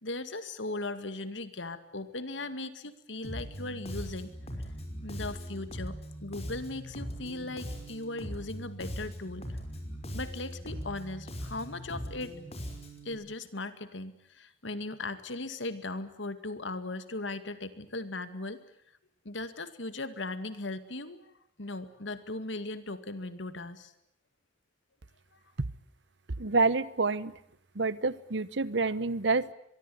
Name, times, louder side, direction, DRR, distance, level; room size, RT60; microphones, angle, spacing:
voice 1, 0.0-4.3 5.0-9.5 10.1-12.4 13.0-18.6 19.2-21.3 21.6-23.9, left 2 dB, 80° left, 11 dB, 2.2 m, -38 dB
Bass guitar, 3.2-13.1, equal, 35° left, 5.8 m, -40 dB
voice 2, 26.4-27.3 27.8-29.5, right 3 dB, 70° right, 18 dB, 1.0 m, -28 dB
24.0 x 23.0 x 9.4 m, 0.72 s
head